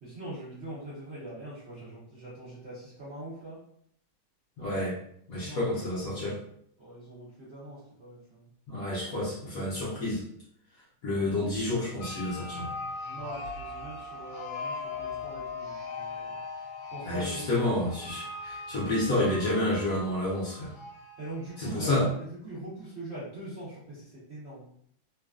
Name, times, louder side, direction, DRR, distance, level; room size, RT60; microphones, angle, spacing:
voice 1, 0.0-3.6 5.3-5.6 6.8-8.5 13.0-16.7 16.9-17.6 21.2-24.7, right 1 dB, 55° right, -9 dB, 0.7 m, -42 dB
voice 2, 4.6-5.0 5.3-6.4 8.7-10.2 11.0-12.7 17.0-20.7 21.6-22.1, left 1 dB, 60° left, -6 dB, 1.0 m, -29 dB
sound 1, 12.0-21.7, left 3 dB, 80° left, 1.3 m, -40 dB
3.1 x 2.2 x 2.3 m, 0.68 s
omnidirectional pair, 2.1 m